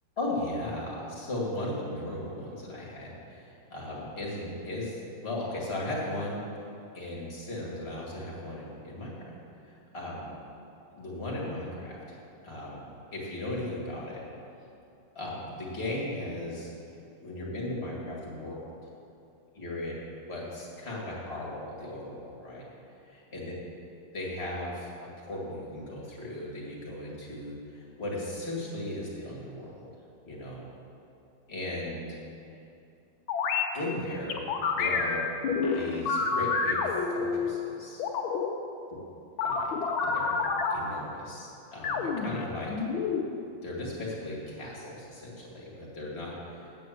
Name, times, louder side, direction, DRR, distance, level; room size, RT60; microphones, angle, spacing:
voice 1, 0.2-6.4 6.9-9.1 9.6-10.3 10.9-12.2 12.4-12.8 13.1-14.2 15.2-16.7 17.2-18.6 19.5-19.9 20.3-22.6 23.0-23.5 24.1-29.9 30.3-30.7 31.5-32.1 33.7-34.4 34.7-35.2 35.7-38.0 39.4-42.7 43.6-46.7, left 1 dB, 30° left, -4 dB, 2.2 m, -37 dB
sound 1, 33.3-33.6 34.3-37.5 38.0-38.5 39.4-40.7 41.8-43.2, left 5 dB, 80° left, 1.6 m, -28 dB
8.7 x 6.8 x 7.8 m, 2.6 s
omnidirectional pair, 2.2 m